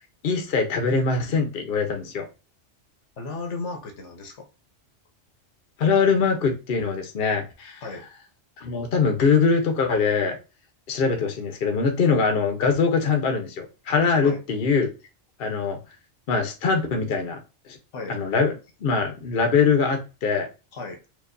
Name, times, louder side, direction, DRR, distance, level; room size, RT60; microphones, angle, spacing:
voice 1, 0.2-2.3 5.8-7.8 8.6-10.4 10.9-14.9 15.4-15.8 16.3-17.4 17.7-17.8 18.1-18.5 18.8-20.5, left 5 dB, 55° left, 4 dB, 0.9 m, -22 dB
voice 2, 3.2-4.5 7.8-8.1 14.2-14.4 17.9-18.2 20.7-21.0, left 3 dB, 70° left, 4 dB, 1.2 m, -34 dB
4.6 x 2.6 x 2.5 m, 0.29 s
omnidirectional pair, 1.3 m